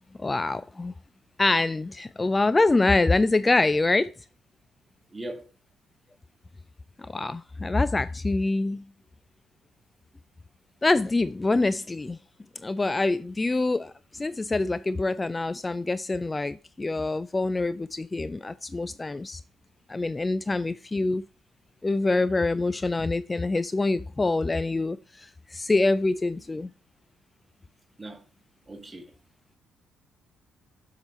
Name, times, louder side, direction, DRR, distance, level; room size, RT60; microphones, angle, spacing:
voice 1, 0.2-0.9 1.4-4.1 7.0-8.8 10.8-12.2 12.6-19.4 19.9-21.2 21.8-26.7, left 2 dB, 25° left, 0.3 m, -25 dB
voice 2, 5.1-5.5 28.0-28.3 28.7-29.1, right 1 dB, 25° right, 1.8 m, -39 dB
7.9 x 5.7 x 3.0 m
figure-of-eight pair, 45°, 0 cm